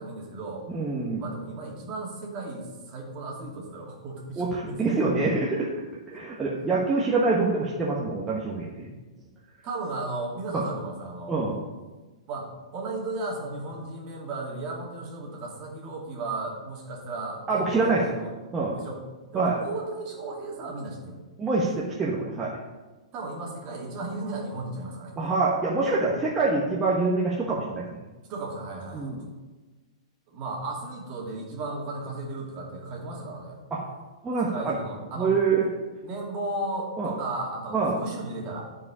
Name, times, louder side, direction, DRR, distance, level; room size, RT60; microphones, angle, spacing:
voice 1, 0.0-0.6 1.2-5.0 6.1-6.2 6.6-6.7 9.6-11.4 12.3-18.3 18.7-19.0 19.3-21.2 23.1-25.2 28.3-29.2 30.3-33.6 34.4-35.3 36.0-38.7, right 2 dB, 35° right, -1 dB, 2.4 m, -35 dB
voice 2, 0.7-1.2 4.4-5.7 6.1-8.9 10.5-10.6 11.3-11.6 17.5-18.1 18.5-18.7 19.3-19.5 21.4-22.5 25.2-27.8 28.9-29.2 33.7-33.8 34.2-34.8 35.2-35.6 37.0-37.1 37.7-37.9, right 3 dB, 15° right, -5 dB, 1.2 m, -25 dB
12.5 x 4.9 x 4.9 m, 1.2 s
hypercardioid pair, 145°, 3 cm